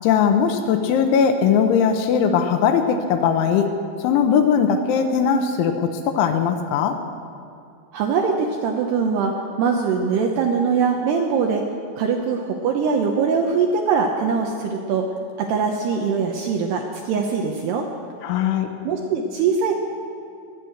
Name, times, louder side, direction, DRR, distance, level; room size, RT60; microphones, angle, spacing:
voice 1, 0.0-3.7 4.0-7.0 18.2-18.7, left 7 dB, 80° left, 5 dB, 3.1 m, -19 dB
voice 2, 7.9-9.3 9.6-11.6 12.0-15.1 15.4-17.9 18.8-19.7, right 5 dB, 75° right, 2 dB, 2.5 m, -22 dB
22.5 x 9.2 x 6.5 m, 2.6 s
omnidirectional pair, 5.8 m